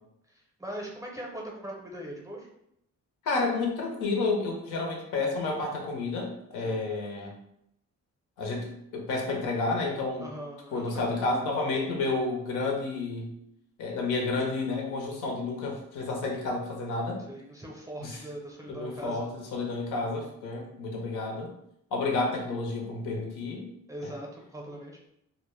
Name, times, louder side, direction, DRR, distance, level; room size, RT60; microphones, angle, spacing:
voice 1, 0.6-2.5 6.6-6.8 10.2-11.1 17.3-19.2 23.9-25.0, right 1 dB, 10° right, -1 dB, 0.5 m, -40 dB
voice 2, 3.2-7.3 8.4-10.3 10.7-13.3 13.8-17.2 18.0-18.2 18.7-21.5 21.9-23.7 24.0-24.1, left 3 dB, 85° left, 0 dB, 0.7 m, -30 dB
2.1 x 2.0 x 3.1 m, 0.77 s
cardioid pair, 90°, 30 cm